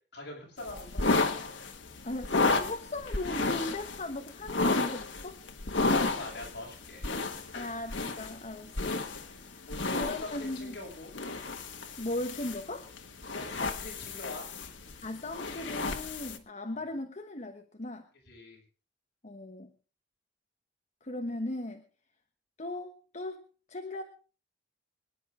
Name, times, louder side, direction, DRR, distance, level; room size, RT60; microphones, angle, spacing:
voice 1, 0.1-1.2 5.7-7.1 9.7-11.2 13.3-14.5 18.3-18.6, left 2 dB, 60° left, -1 dB, 7.4 m, -43 dB
sound 1, 0.6-16.4, left 3 dB, 85° left, 1.6 m, -32 dB
voice 2, 2.0-5.4 7.5-9.0 9.4-9.5 10.0-10.7 12.0-12.9 15.0-18.1 19.2-19.7 21.0-21.8 22.6-23.4 23.7-24.0, left 1 dB, 40° left, 5 dB, 1.3 m, -37 dB
25.0 x 10.5 x 3.9 m, 0.37 s
head